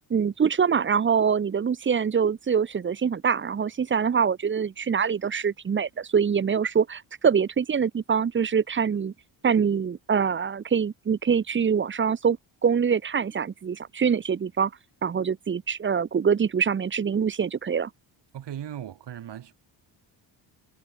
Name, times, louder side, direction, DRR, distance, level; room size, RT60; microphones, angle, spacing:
voice 1, 0.1-9.1 9.4-12.4 12.6-14.7 15.0-17.9, right 6 dB, 25° right, 0.7 m, -24 dB
voice 2, 18.3-19.5, right 10 dB, 60° right, 4.9 m, -37 dB
cardioid pair, 120°, 46 cm